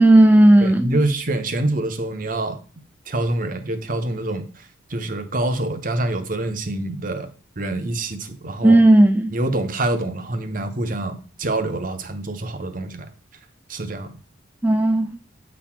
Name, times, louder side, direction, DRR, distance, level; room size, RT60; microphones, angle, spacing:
voice 1, 0.0-1.0 8.6-9.3 14.6-15.1, right 1 dB, 10° right, 4 dB, 0.4 m, -13 dB
voice 2, 0.6-2.6 3.1-4.4 4.9-7.3 7.6-8.8 9.3-13.1 13.7-14.1, right 2 dB, 45° right, 8 dB, 0.9 m, -26 dB
8.0 x 4.2 x 4.4 m, 0.38 s
head